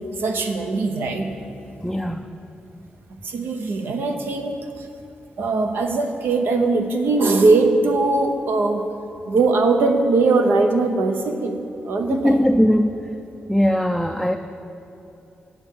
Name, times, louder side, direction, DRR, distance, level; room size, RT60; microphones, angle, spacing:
voice 1, 0.2-1.3 3.2-4.9 5.4-8.8 9.3-12.4, right 3 dB, 85° right, 5 dB, 0.9 m, -20 dB
voice 2, 1.8-2.2 12.1-13.0 13.5-14.4, equal, ahead, 6 dB, 0.3 m, -19 dB
8.9 x 7.4 x 6.5 m, 2.9 s
wide cardioid pair, 120°, 4 cm